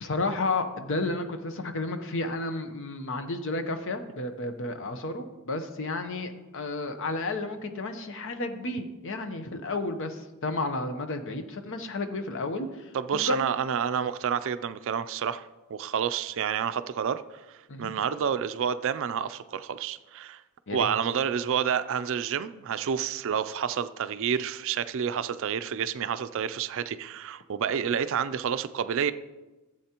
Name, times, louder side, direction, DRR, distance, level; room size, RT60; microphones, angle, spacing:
voice 1, 0.0-13.4 17.7-17.9 20.7-20.9, left 2 dB, 60° left, 8 dB, 0.8 m, -32 dB
voice 2, 12.9-17.4 17.8-20.4 20.7-29.1, right 8 dB, 60° right, 12 dB, 0.4 m, -29 dB
15.0 x 7.8 x 2.9 m, 1.1 s
head